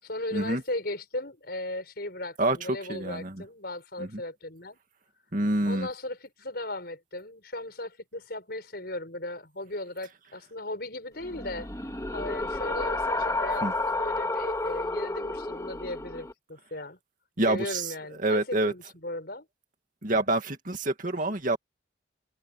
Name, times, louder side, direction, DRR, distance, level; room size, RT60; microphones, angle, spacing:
voice 1, 0.0-4.8 5.6-11.7 12.1-17.0 17.5-19.5, left 1 dB, 55° left, 6.2 m, -37 dB
voice 2, 2.9-3.4 4.0-4.2 5.3-5.9 13.6-13.7 17.4-17.9 18.2-18.7 20.0-21.6, right 2 dB, 45° right, 2.1 m, -27 dB
sound 1, 11.2-16.3, left 2 dB, 15° left, 1.7 m, -31 dB
head